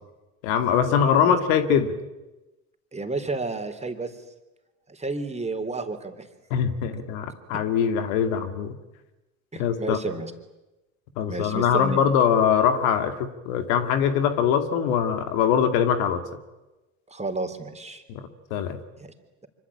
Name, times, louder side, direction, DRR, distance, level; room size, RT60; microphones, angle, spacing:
voice 1, 0.4-1.9 6.5-8.8 9.6-10.0 11.2-16.2 18.1-18.2 18.5-18.8, left 8 dB, 75° left, 9 dB, 2.4 m, -22 dB
voice 2, 2.9-4.2 4.9-6.3 9.5-10.3 11.3-12.0 17.1-18.0 19.0-19.1, right 3 dB, 15° right, 6 dB, 3.7 m, -31 dB
25.5 x 24.5 x 8.8 m, 1.0 s
hypercardioid pair, 75°, 41 cm